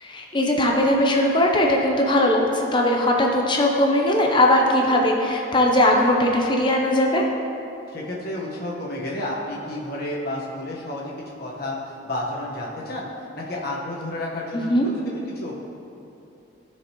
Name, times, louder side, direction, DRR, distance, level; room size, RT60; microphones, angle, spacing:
voice 1, 0.0-7.2 14.5-14.9, left 1 dB, 25° left, 0 dB, 0.7 m, -19 dB
voice 2, 7.9-11.1 11.4-13.1 13.3-15.5, left 1 dB, 50° left, -4 dB, 1.4 m, -31 dB
14.5 x 5.0 x 3.1 m, 2.8 s
head